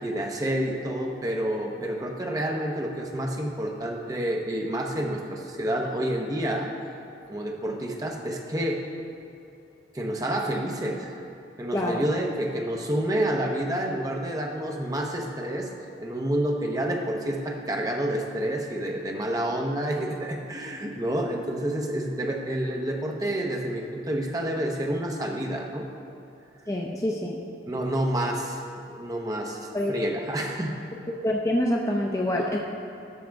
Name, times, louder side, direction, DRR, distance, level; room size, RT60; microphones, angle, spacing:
voice 1, 0.0-6.7 7.3-8.8 9.9-11.1 11.6-15.7 16.0-25.8 27.7-28.6 28.9-30.7, right 1 dB, 20° right, 1 dB, 0.8 m, -29 dB
voice 2, 11.7-12.0 26.7-27.4 29.7-29.9 31.1-32.6, left 1 dB, 20° left, -1 dB, 0.5 m, -26 dB
12.5 x 6.3 x 3.5 m, 2.8 s
head